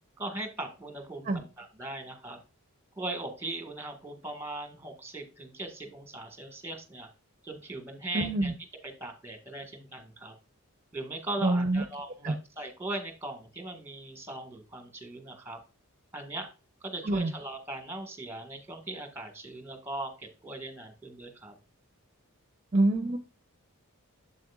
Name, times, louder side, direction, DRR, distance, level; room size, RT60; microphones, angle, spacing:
voice 1, 0.2-2.4 3.0-7.1 7.4-8.5 8.8-10.3 10.9-15.6 16.1-16.5 16.8-21.5, right 2 dB, 10° right, 5 dB, 1.7 m, -39 dB
voice 2, 8.1-8.5 11.4-11.8 12.2-12.3 17.0-17.3 22.7-23.2, right 2 dB, 35° right, 6 dB, 0.8 m, -26 dB
7.8 x 7.6 x 2.4 m, 0.32 s
head